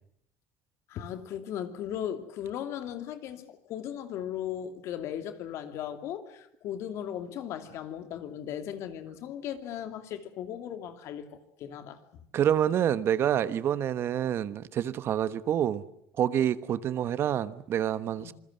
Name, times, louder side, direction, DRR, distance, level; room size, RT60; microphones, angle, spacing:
voice 1, 0.9-12.0 18.2-18.3, left 10 dB, 60° left, 2.7 m, -37 dB
voice 2, 12.3-15.8 16.2-18.3, right 10 dB, 50° right, 1.2 m, -27 dB
26.5 x 21.0 x 7.8 m
supercardioid pair, 105°, 6 cm